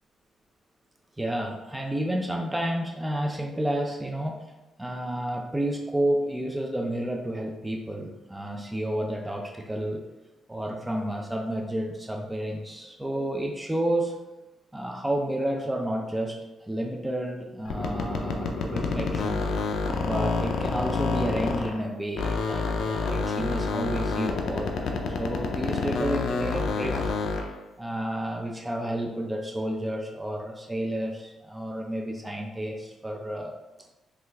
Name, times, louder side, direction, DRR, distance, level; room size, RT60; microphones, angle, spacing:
voice 1, 1.2-4.4 4.8-10.0 10.5-14.2 14.7-19.5 20.0-27.1 27.8-33.5, right 1 dB, 10° right, 1 dB, 0.4 m, -31 dB
sound 1, 17.6-21.9 22.1-27.6, left 4 dB, 75° left, 0.4 m, -28 dB
3.0 x 2.3 x 3.3 m, 1.0 s
cardioid pair, 75°, 0 cm